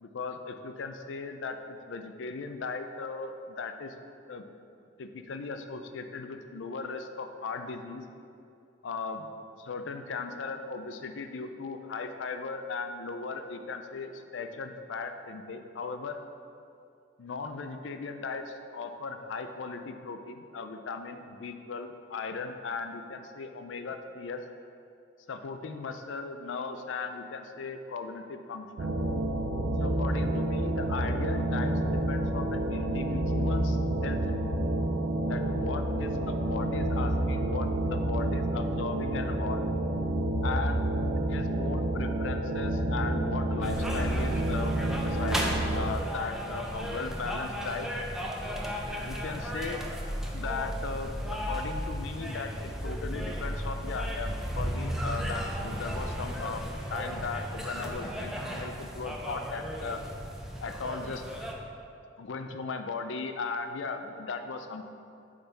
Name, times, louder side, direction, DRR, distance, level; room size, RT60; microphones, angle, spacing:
voice 1, 0.0-3.9 4.3-4.4 5.0-8.0 8.8-9.3 9.6-16.2 17.2-24.4 25.3-29.0 29.8-34.6 35.3-39.7 40.4-40.8 41.3-47.9 49.0-49.8 50.3-60.0 60.6-61.2 62.2-64.9, left 4 dB, 85° left, 7 dB, 0.5 m, -37 dB
sound 1, 28.8-46.0, right 1 dB, 65° right, 0.5 m, -29 dB
sound 2, 43.6-61.5, equal, 5° right, 0.6 m, -35 dB
7.8 x 3.8 x 4.0 m, 2.6 s
head